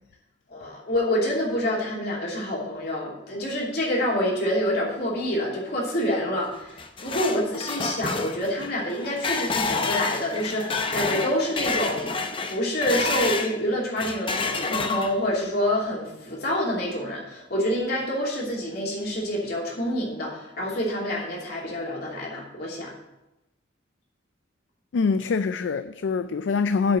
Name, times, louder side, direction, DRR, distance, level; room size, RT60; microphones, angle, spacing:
voice 1, 0.5-12.1 12.5-22.9, left 1 dB, 55° left, 2.9 m, -27 dB
sound 1, 6.6-13.6 14.0-15.4, left 4 dB, 30° left, 0.6 m, -29 dB
voice 2, 24.9-27.0, left 5 dB, 70° left, 0.4 m, -24 dB
8.7 x 5.2 x 7.8 m
head